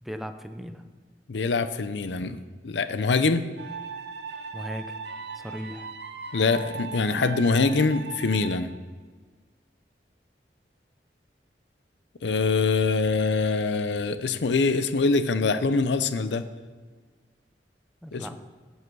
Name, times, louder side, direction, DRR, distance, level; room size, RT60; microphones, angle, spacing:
voice 1, 0.0-0.8 4.5-5.0 5.3-5.9 18.0-18.4, equal, ahead, 7 dB, 0.6 m, -37 dB
voice 2, 1.3-2.4 2.6-3.4 6.3-8.7 12.2-16.4 18.1-18.4, left 4 dB, 80° left, 11 dB, 0.6 m, -24 dB
sound 1, 3.6-8.6, right 5 dB, 70° right, 0.8 m, -38 dB
16.5 x 5.6 x 4.7 m, 1.4 s
head